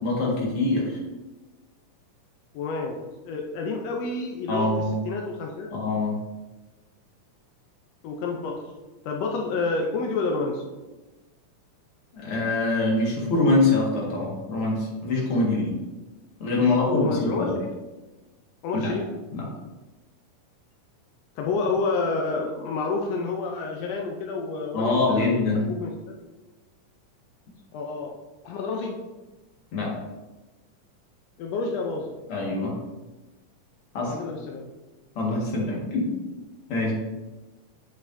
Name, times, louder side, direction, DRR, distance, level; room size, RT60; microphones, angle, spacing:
voice 1, 0.0-1.0 4.5-5.0 5.7-6.2 12.1-15.8 16.4-17.6 18.7-19.0 19.3-19.5 24.7-25.7 29.7-30.0 32.3-32.8 33.9-34.2 35.2-36.1 36.7-36.9, left 2 dB, 50° left, -3 dB, 2.4 m, -24 dB
voice 2, 2.5-3.0 3.2-4.7 5.1-5.7 8.0-8.6 9.0-10.6 16.5-17.7 18.6-19.0 21.4-25.4 25.7-25.9 27.7-28.1 28.4-29.0 31.4-32.1 34.1-34.7, left 3 dB, 80° left, 1 dB, 1.5 m, -29 dB
8.4 x 7.4 x 2.7 m, 1.2 s
omnidirectional pair, 3.7 m